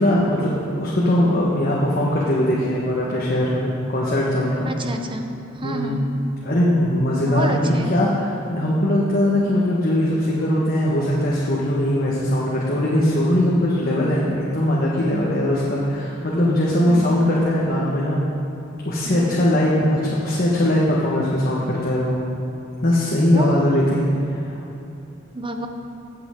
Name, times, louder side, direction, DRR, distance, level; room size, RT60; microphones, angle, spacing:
voice 1, 0.0-4.7 5.6-6.0 6.4-8.2 8.5-18.2 18.8-22.2 22.8-24.5, left 1 dB, 45° left, -5 dB, 1.3 m, -20 dB
voice 2, 4.6-5.3 5.5-6.1 7.1-8.0 13.8-14.1 16.9-17.2 19.0-19.4 23.3-23.6 25.3-25.7, right 1 dB, 25° right, 5 dB, 0.8 m, -29 dB
17.0 x 7.8 x 3.7 m, 2.7 s
head